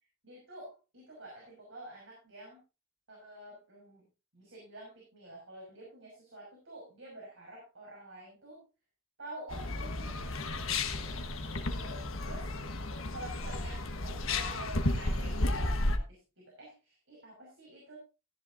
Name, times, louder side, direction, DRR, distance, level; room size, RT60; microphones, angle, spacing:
voice 1, 0.2-2.6 3.1-4.0 4.3-8.6 9.2-12.5 13.1-18.0, right 1 dB, 65° right, -3 dB, 6.0 m, -49 dB
sound 1, 9.5-16.0, left 2 dB, 75° left, 1.3 m, -33 dB
16.5 x 10.5 x 2.6 m, 0.30 s
head